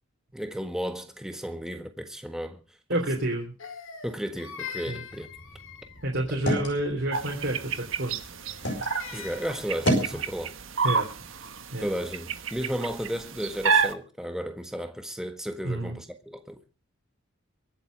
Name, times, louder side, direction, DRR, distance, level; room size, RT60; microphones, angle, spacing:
voice 1, 0.3-2.6 4.0-5.3 6.3-6.4 9.1-10.5 11.8-16.6, equal, 5° right, 1.5 m, -34 dB
voice 2, 2.9-3.5 4.9-5.0 6.0-8.1 10.8-11.4 11.7-11.9 15.6-15.9, right 1 dB, 60° right, 3.4 m, -29 dB
Crying sobbing, 3.6-6.1 8.3-9.8, left 7 dB, 80° left, 2.8 m, -42 dB
sound 1, 5.1-8.9 9.3-10.2, equal, 65° left, 5.8 m, -32 dB
sound 2, 7.1-13.9, right 5 dB, 80° right, 1.3 m, -30 dB
23.5 x 8.1 x 5.2 m
head